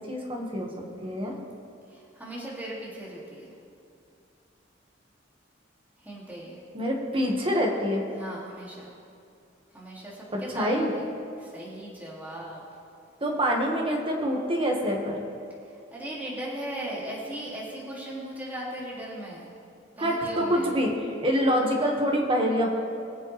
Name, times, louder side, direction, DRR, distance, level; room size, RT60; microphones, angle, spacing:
voice 1, 0.1-0.7 1.0-1.3 6.7-8.0 10.3-10.9 13.2-15.2 20.0-22.8, equal, 30° right, -1 dB, 1.6 m, -26 dB
voice 2, 1.9-3.5 6.0-6.6 8.1-9.0 9.7-11.0 11.4-12.6 15.6-19.5 20.0-20.8, right 1 dB, 10° right, -6 dB, 2.6 m, -38 dB
22.0 x 7.6 x 3.4 m, 2.4 s
head